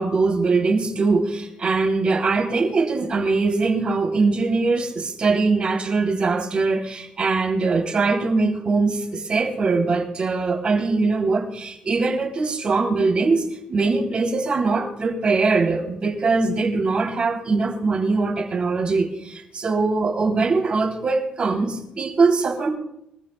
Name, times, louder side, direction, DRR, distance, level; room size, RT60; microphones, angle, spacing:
voice 1, 0.0-22.7, right 3 dB, 40° right, 1 dB, 3.3 m, -22 dB
24.5 x 15.0 x 2.3 m, 0.82 s
cardioid pair, 110°, 3 cm